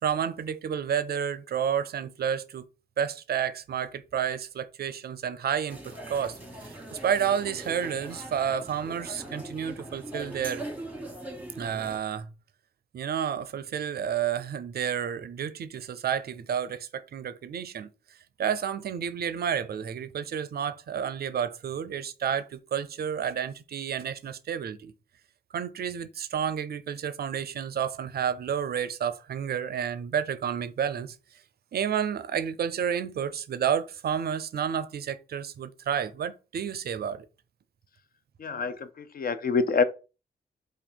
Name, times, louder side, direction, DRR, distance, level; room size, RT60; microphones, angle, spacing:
voice 1, 0.0-2.7 3.0-10.6 11.6-12.3 12.9-17.9 18.4-24.9 25.5-31.2 31.7-37.3, right 8 dB, 55° right, 0.4 m, -30 dB
sound 1, 5.7-12.0, right 1 dB, 10° right, 1.3 m, -41 dB
voice 2, 38.4-39.8, left 5 dB, 50° left, 0.5 m, -26 dB
2.7 x 2.5 x 4.2 m
supercardioid pair, 40°, 19 cm